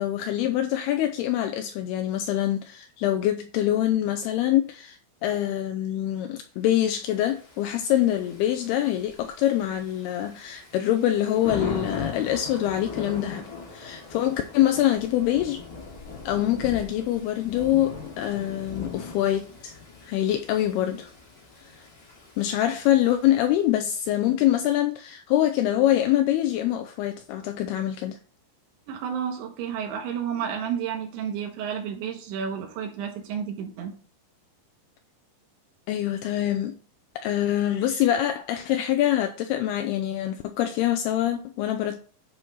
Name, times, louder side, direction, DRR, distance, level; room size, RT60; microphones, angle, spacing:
voice 1, 0.0-15.6 16.3-19.7 20.0-21.1 21.6-21.7 22.4-28.2 35.9-36.8 37.2-42.0, left 12 dB, 85° left, 2.3 m, -25 dB
Thunder / Rain, 7.1-23.7, left 5 dB, 30° left, 2.0 m, -40 dB
voice 2, 28.9-33.9, right 8 dB, 85° right, 3.9 m, -31 dB
10.5 x 4.5 x 4.2 m
omnidirectional pair, 5.1 m